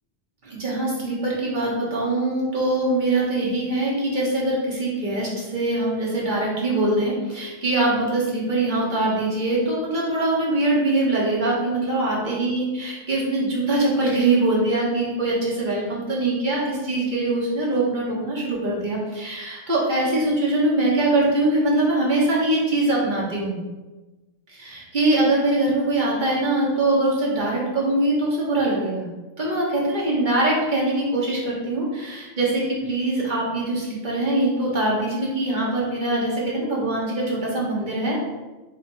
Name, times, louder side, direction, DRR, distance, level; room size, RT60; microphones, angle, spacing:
voice 1, 0.4-23.5 24.5-29.1 29.4-38.2, right 2 dB, 40° right, -5 dB, 1.2 m, -23 dB
4.2 x 2.8 x 4.3 m, 1.2 s
omnidirectional pair, 1.3 m